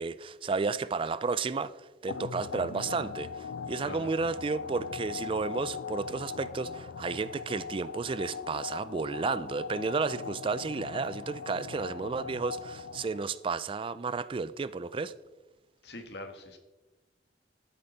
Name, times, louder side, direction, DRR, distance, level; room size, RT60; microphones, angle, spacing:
voice 1, 0.0-15.1, right 4 dB, 30° right, 0.3 m, -32 dB
sound 1, 2.1-13.4, left 5 dB, 90° left, 0.4 m, -40 dB
voice 2, 15.8-16.6, left 2 dB, 65° left, 1.5 m, -43 dB
12.5 x 9.7 x 4.0 m
head